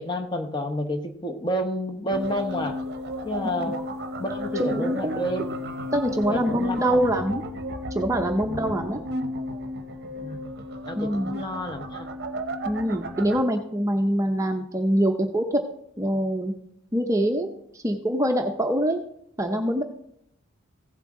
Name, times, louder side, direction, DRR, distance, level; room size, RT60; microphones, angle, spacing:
voice 1, 0.0-2.8 3.2-3.8 4.2-5.4 6.3-7.0 8.5-8.8 10.1-10.4 10.9-12.1, left 1 dB, 20° left, 5 dB, 0.9 m, -30 dB
sound 1, 2.1-13.4, equal, 50° right, 0.7 m, -33 dB
voice 2, 4.6-5.6 5.9-7.4 7.9-9.0 11.0-11.4 12.6-15.6 16.0-16.5 16.9-19.0 19.4-19.8, equal, 15° right, 4 dB, 0.6 m, -24 dB
15.5 x 7.4 x 3.7 m, 0.73 s
head